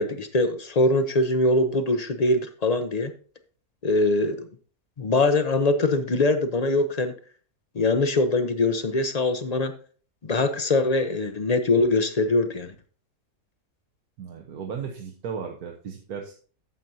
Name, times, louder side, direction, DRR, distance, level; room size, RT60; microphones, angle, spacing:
voice 1, 0.0-3.1 3.8-4.4 5.0-7.1 7.7-9.7 10.2-12.7, left 2 dB, 55° left, 9 dB, 0.4 m, -22 dB
voice 2, 14.2-16.3, right 6 dB, 75° right, 2 dB, 1.4 m, -35 dB
11.5 x 7.5 x 2.7 m, 0.41 s
omnidirectional pair, 1.6 m